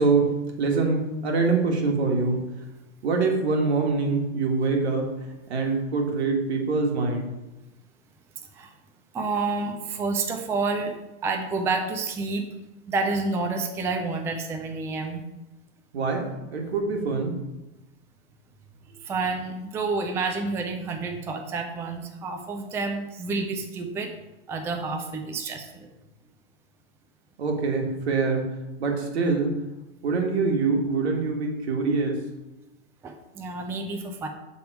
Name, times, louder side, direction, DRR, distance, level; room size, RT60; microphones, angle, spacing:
voice 1, 0.0-2.5 3.0-7.3 15.9-17.4 27.4-29.6 30.0-32.2, right 4 dB, 80° right, 2 dB, 1.6 m, -25 dB
voice 2, 9.1-10.9 11.2-12.5 12.9-15.2 19.0-24.1 24.5-25.9 33.0-34.3, right 3 dB, 10° right, 4 dB, 0.4 m, -29 dB
7.5 x 3.5 x 4.6 m, 1.0 s
hypercardioid pair, 130°, 32 cm